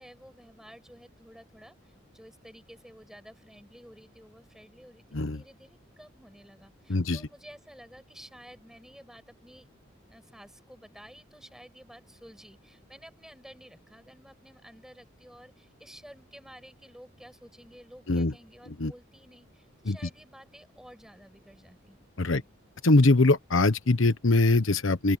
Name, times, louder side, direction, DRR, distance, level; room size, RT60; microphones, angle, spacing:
voice 1, 0.0-9.7 10.1-22.0 22.3-22.5, equal, 5° right, 7.0 m, -52 dB
voice 2, 6.9-7.2 18.1-18.3 18.8-18.9 19.8-20.0 22.2-22.4 22.8-25.2, left 2 dB, 85° left, 1.1 m, -22 dB
open air
head